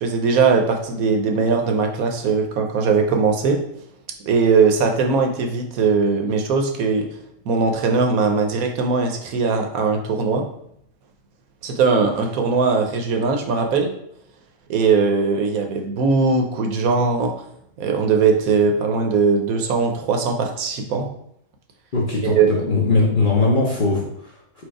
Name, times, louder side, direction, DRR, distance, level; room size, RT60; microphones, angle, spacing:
voice 1, 0.0-3.6 4.2-7.1 7.5-10.4 11.6-13.9 14.7-17.3 17.8-21.1 22.2-22.5, right 4 dB, 75° right, 3 dB, 1.1 m, -20 dB
voice 2, 21.9-24.7, left 3 dB, 45° left, -3 dB, 0.7 m, -20 dB
4.6 x 2.4 x 4.6 m, 0.74 s
omnidirectional pair, 1.6 m